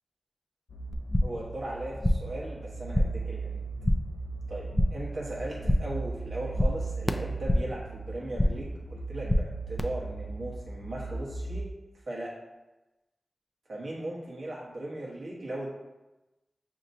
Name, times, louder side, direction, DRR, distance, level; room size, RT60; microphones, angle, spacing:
sound 1, 0.7-11.7, right 3 dB, 85° left, 0.4 m, -38 dB
sound 2, 0.9-1.5 1.7-2.4 2.7-3.3 3.6-4.2 4.5-5.1 5.4-6.0 6.3-7.8 8.1-8.7 9.0-9.8, left 1 dB, 15° left, 0.3 m, -28 dB
voice 1, 1.2-3.6 4.5-11.7 12.1-12.4 13.7-15.7, right 1 dB, 75° right, -5 dB, 1.1 m, -38 dB
6.6 x 2.9 x 2.7 m, 1.0 s
wide cardioid pair, 95°, 0 cm